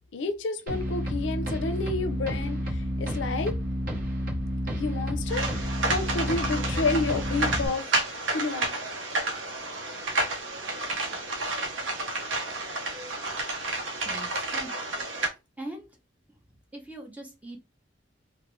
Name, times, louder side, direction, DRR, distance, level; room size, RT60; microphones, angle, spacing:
voice 1, 0.1-3.5 4.8-8.7, left 3 dB, 75° left, 0.4 m, -30 dB
sound 1, 0.7-7.7, equal, 50° right, 0.8 m, -30 dB
sound 2, 5.3-15.3, right 2 dB, 80° right, 0.7 m, -31 dB
voice 2, 14.0-15.2 15.6-15.9 16.7-17.6, right 1 dB, 10° right, 0.7 m, -42 dB
3.1 x 2.0 x 3.0 m
head